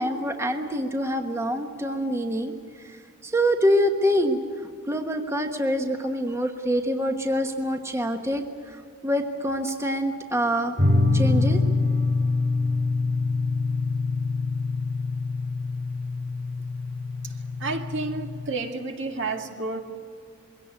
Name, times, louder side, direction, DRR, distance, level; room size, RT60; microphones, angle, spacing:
voice 1, 0.0-2.5 2.8-10.8 11.1-11.6, equal, 15° right, 5 dB, 1.2 m, -26 dB
sound 1, 10.8-18.4, left 3 dB, 45° right, 3.3 m, -25 dB
voice 2, 17.6-19.8, right 3 dB, 65° right, 4 dB, 2.1 m, -30 dB
22.0 x 17.0 x 9.6 m, 2.3 s
head